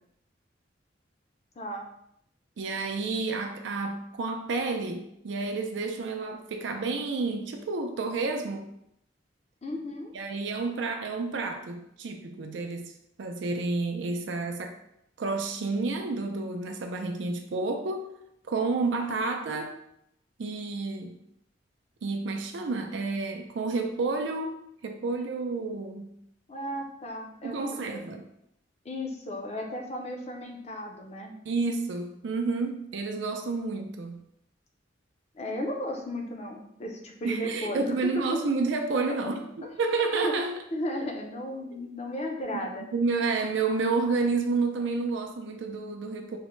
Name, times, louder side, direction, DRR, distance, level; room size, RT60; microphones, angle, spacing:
voice 1, 1.6-1.9 9.6-10.1 26.5-28.1 28.8-31.3 35.3-37.9 38.9-39.2 40.2-40.3 40.7-42.8, equal, 35° left, 1 dB, 0.5 m, -35 dB
voice 2, 2.6-8.7 10.1-12.9 13.2-14.7 15.2-18.1 18.5-19.8 20.4-21.2 22.0-24.5 24.8-26.1 27.4-28.2 31.4-34.2 37.2-40.5 41.7-41.8 42.9-46.4, right 3 dB, 85° right, 4 dB, 0.4 m, -30 dB
3.5 x 2.1 x 3.0 m, 0.75 s
head